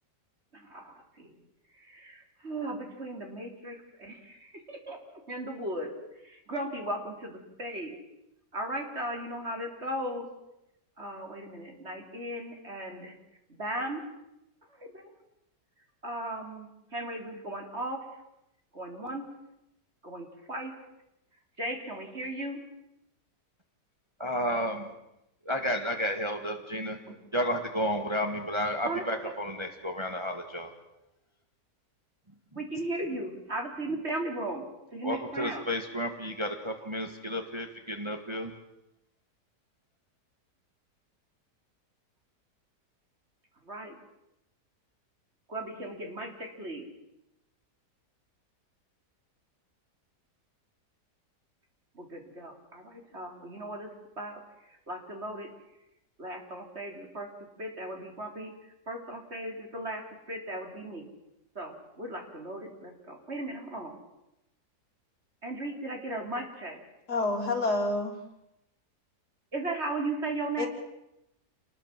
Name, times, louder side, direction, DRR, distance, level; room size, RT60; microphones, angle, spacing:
voice 1, 0.5-1.4 1.7-5.9 6.2-8.0 8.5-10.3 11.0-13.2 13.5-14.1 14.7-15.1 16.0-18.0 18.7-19.3 20.0-20.7 21.6-22.6 27.1-27.2 28.8-29.3 32.5-35.6 43.7-44.0 45.5-46.9 51.9-53.9 54.2-55.5 56.2-57.3 57.6-61.1 61.6-63.9 65.4-66.8 69.5-70.7, right 1 dB, 40° right, 3 dB, 4.0 m, -37 dB
voice 2, 24.2-24.9 25.5-27.0 27.3-30.7 35.0-38.5, equal, 15° right, 4 dB, 1.9 m, -32 dB
voice 3, 67.1-68.2 70.6-70.7, left 2 dB, 65° left, 2 dB, 3.9 m, -28 dB
28.0 x 20.5 x 7.6 m, 0.87 s
omnidirectional pair, 1.8 m